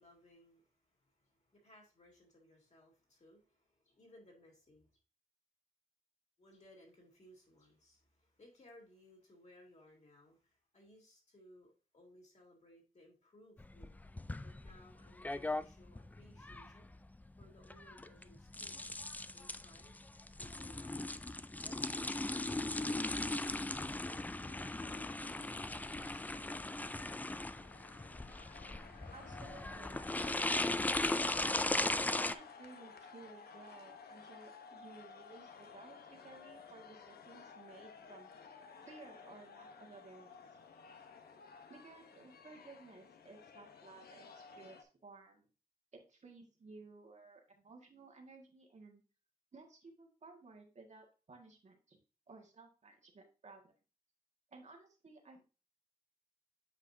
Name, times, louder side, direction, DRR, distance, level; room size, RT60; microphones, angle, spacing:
voice 1, 0.0-5.0 6.4-14.0 14.4-16.9 17.4-18.8 19.3-20.0 20.4-21.1 21.6-23.0 23.7-26.5, left 1 dB, 45° left, 2.9 m, -63 dB
sound 1, 13.6-32.3, left 2 dB, 10° left, 0.3 m, -38 dB
sound 2, 27.6-44.8, left 5 dB, 80° left, 0.9 m, -55 dB
voice 2, 29.1-30.0 31.4-38.3 38.8-40.4 41.7-45.5 45.9-49.0 49.5-52.0 52.3-53.8 54.5-55.5, right 3 dB, 45° right, 1.6 m, -56 dB
8.3 x 4.8 x 2.6 m
cardioid pair, 80°, 16 cm